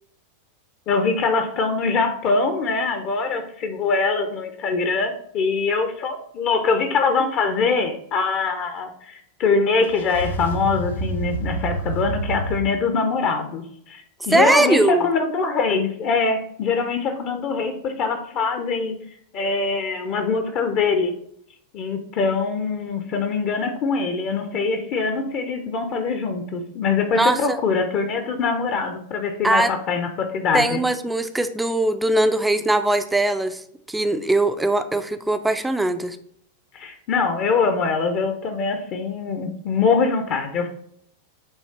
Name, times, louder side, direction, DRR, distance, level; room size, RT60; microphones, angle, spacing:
voice 1, 0.9-18.9 19.3-21.1 21.7-30.8 36.7-40.7, left 4 dB, 40° left, 6 dB, 0.8 m, -23 dB
sound 1, 9.8-12.6, right 2 dB, 75° left, 1.2 m, -28 dB
voice 2, 14.3-15.0 27.1-27.6 29.4-29.7 30.5-33.6 33.9-36.2, right 2 dB, 5° right, 10 dB, 0.5 m, -20 dB
8.1 x 3.1 x 4.3 m, 0.68 s
figure-of-eight pair, 90°, 0 cm